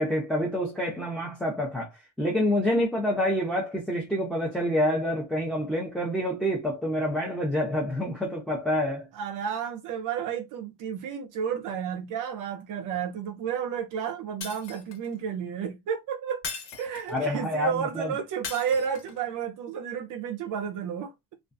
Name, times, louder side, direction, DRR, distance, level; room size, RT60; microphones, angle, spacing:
voice 1, 0.0-9.1 17.1-18.1, equal, ahead, 0.6 m, -27 dB
voice 2, 9.1-16.4 16.8-21.1, right 7 dB, 50° right, 0.5 m, -31 dB
Shatter, 14.4-15.1 16.4-17.3 18.4-19.2, left 5 dB, 80° left, 1.2 m, -38 dB
2.3 x 2.3 x 2.5 m
cardioid pair, 120°, 40 cm